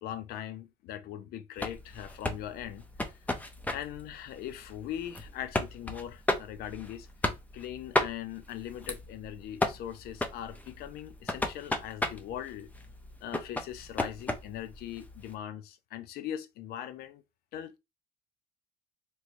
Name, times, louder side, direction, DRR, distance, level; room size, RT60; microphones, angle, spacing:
voice 1, 0.0-2.8 3.7-7.1 7.5-12.7 13.2-17.2 17.5-17.8, left 11 dB, 65° left, 0.5 m, -40 dB
sound 1, 1.6-15.3, left 1 dB, 10° left, 0.6 m, -35 dB
3.1 x 3.0 x 2.6 m
cardioid pair, 100°, 17 cm